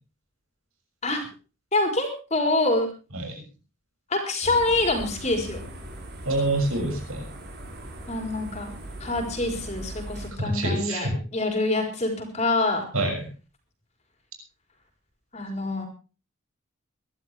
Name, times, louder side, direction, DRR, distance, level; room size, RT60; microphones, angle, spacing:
voice 1, 1.7-2.9 4.1-5.6 8.1-8.7 9.0-12.8 15.3-15.9, left 2 dB, 30° left, 4 dB, 4.2 m, -26 dB
sound 1, 4.4-10.3, right 1 dB, 50° right, 5.4 m, -39 dB
voice 2, 6.2-7.3 10.4-11.1 12.9-13.2, right 1 dB, 85° right, 3 dB, 6.5 m, -26 dB
23.0 x 12.5 x 3.4 m, 0.34 s
head